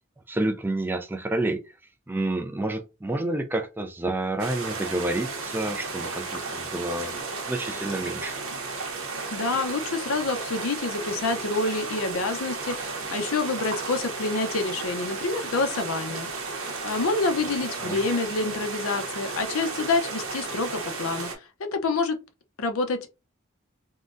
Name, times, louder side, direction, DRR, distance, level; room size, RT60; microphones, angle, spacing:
voice 1, 0.3-1.6 2.1-7.2 7.5-8.4 17.8-18.0, right 2 dB, 10° right, 0.3 m, -29 dB
sound 1, 4.4-21.4, right 4 dB, 80° right, 0.8 m, -34 dB
voice 2, 9.3-21.3 21.6-22.2 22.6-23.1, left 3 dB, 85° left, 0.6 m, -27 dB
3.7 x 2.1 x 2.5 m
head